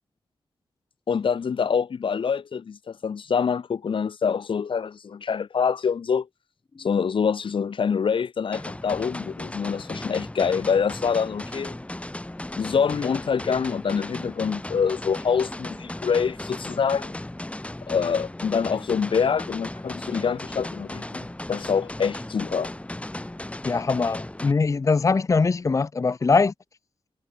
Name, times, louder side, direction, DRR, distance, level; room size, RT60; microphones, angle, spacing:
voice 1, 1.1-6.3 6.8-11.7 12.6-17.2 17.9-22.7, left 6 dB, 70° left, 1.2 m, -25 dB
sound 1, 8.5-24.5, left 1 dB, 15° left, 7.5 m, -36 dB
voice 2, 23.6-26.5, left 4 dB, 35° left, 0.6 m, -22 dB
wide cardioid pair, 105°, 9 cm